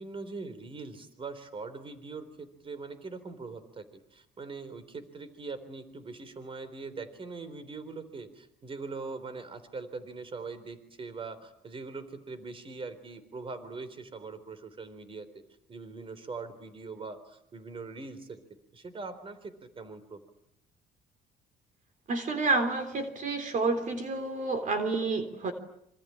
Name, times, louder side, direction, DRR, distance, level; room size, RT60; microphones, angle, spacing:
voice 1, 0.0-15.3 15.7-18.4 18.7-20.2, right 4 dB, 30° right, 12 dB, 3.8 m, -42 dB
voice 2, 22.1-25.5, right 3 dB, 50° right, 8 dB, 3.6 m, -29 dB
26.5 x 25.5 x 8.9 m, 0.78 s
cardioid pair, 110°, 17 cm